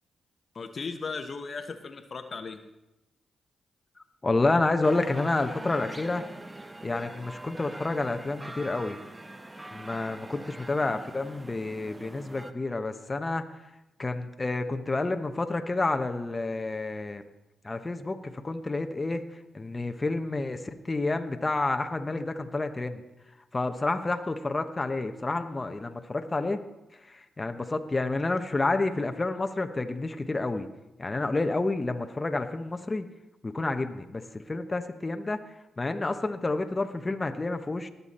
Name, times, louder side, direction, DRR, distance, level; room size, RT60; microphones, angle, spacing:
voice 1, 0.5-2.6, left 4 dB, 55° left, 8 dB, 1.0 m, -36 dB
voice 2, 4.2-6.3 6.8-9.0 9.7-13.4 14.0-17.2 17.6-19.2 19.5-23.0 23.5-26.6 27.1-30.7 31.0-33.1 33.4-35.4 35.8-37.9, left 2 dB, 30° left, 7 dB, 1.0 m, -29 dB
sound 1, 4.8-12.5, right 1 dB, 25° right, 1.0 m, -43 dB
19.5 x 7.0 x 4.3 m, 0.95 s
supercardioid pair, 50°, 0 cm